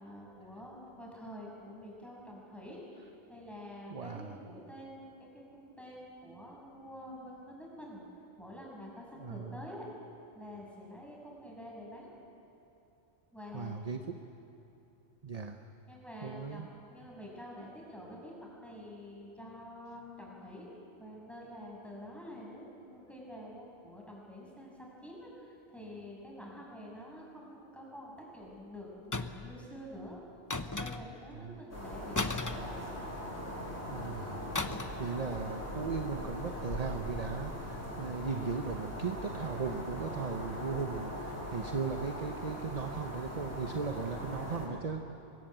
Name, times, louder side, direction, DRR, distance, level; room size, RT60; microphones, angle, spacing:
voice 1, 0.0-8.0 8.4-9.8 10.3-12.1 13.3-13.8 15.9-20.7 21.0-30.2 30.6-32.8, equal, ahead, -3 dB, 6.7 m, -48 dB
voice 2, 3.9-4.4 9.2-9.6 13.5-14.2 15.2-15.6 16.2-16.7 31.3-31.6 33.9-34.4 35.0-45.0, right 5 dB, 35° right, 6 dB, 1.0 m, -37 dB
sound 1, 29.1-29.6 30.5-31.3 32.2-33.3 34.6-35.1 35.3-35.6, left 3 dB, 20° left, 0.7 m, -36 dB
sound 2, 31.7-44.7, equal, 65° left, 6.7 m, -40 dB
24.0 x 22.0 x 9.0 m, 2.9 s
omnidirectional pair, 1.2 m